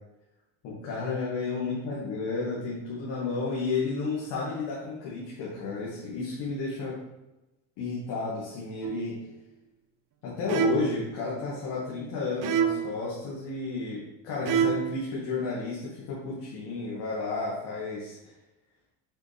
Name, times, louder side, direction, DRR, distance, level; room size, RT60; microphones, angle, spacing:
voice 1, 0.6-7.0 7.8-9.2 10.2-18.2, left 4 dB, 75° left, -7 dB, 2.5 m, -32 dB
sound 1, 8.8-9.2 10.5-11.1 12.4-13.0 14.5-15.0, right 8 dB, 50° right, 0.8 m, -27 dB
7.5 x 5.4 x 3.6 m, 1.0 s
supercardioid pair, 95°, 41 cm